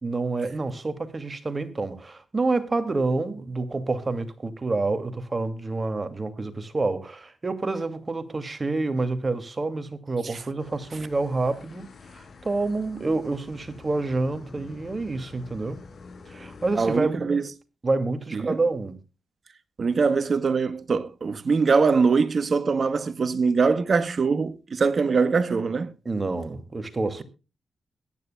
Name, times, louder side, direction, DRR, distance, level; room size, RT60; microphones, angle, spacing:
voice 1, 0.0-15.8 16.3-17.2 17.8-19.0 26.0-27.2, right 3 dB, 35° right, 2.4 m, -28 dB
sound 1, 10.6-17.0, left 4 dB, 65° left, 4.7 m, -47 dB
voice 2, 16.8-17.4 18.3-18.6 19.8-25.9, right 4 dB, 55° right, 1.2 m, -22 dB
22.0 x 9.9 x 2.3 m
cardioid pair, 55°, 0 cm